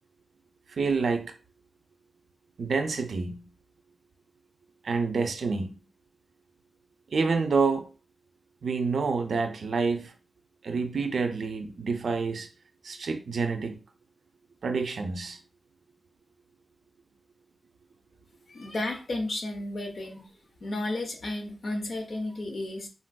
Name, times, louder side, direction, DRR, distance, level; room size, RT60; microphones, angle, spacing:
voice 1, 0.7-1.3 2.6-3.4 4.8-5.7 7.1-7.9 8.6-10.1 10.6-12.5 12.8-13.8 14.6-15.4, right 4 dB, 70° right, 0.4 m, -28 dB
voice 2, 18.5-20.3 20.6-22.9, left 2 dB, 50° left, 0.7 m, -33 dB
3.7 x 2.5 x 2.2 m
wide cardioid pair, 140°, 0 cm